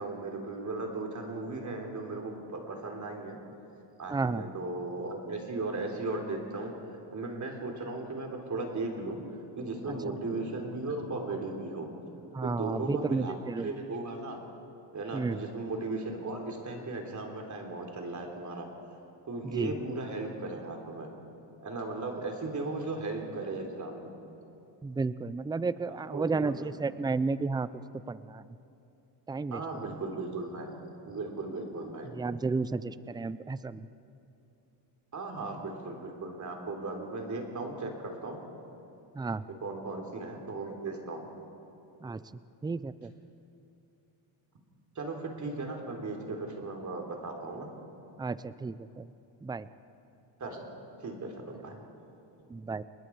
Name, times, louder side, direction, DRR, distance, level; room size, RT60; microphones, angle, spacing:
voice 1, 0.0-3.4 4.0-6.7 7.1-9.2 9.6-11.9 12.4-14.4 14.9-18.7 19.3-21.1 21.6-24.1 26.1-26.7 29.5-30.7 31.1-32.1 35.1-38.4 39.6-41.2 45.0-47.7 50.4-50.6 51.0-51.7, right 3 dB, 40° right, 2 dB, 3.6 m, -36 dB
voice 2, 4.1-4.5 9.9-10.0 12.3-13.8 15.1-15.4 19.4-19.7 24.8-27.7 28.1-28.5 29.3-29.9 32.1-33.9 39.1-39.4 42.0-42.2 42.6-43.1 48.2-49.1 49.4-49.7 52.5-52.8, right 4 dB, 10° right, 15 dB, 0.4 m, -32 dB
29.5 x 20.0 x 4.7 m, 2.8 s
cardioid pair, 110°, 46 cm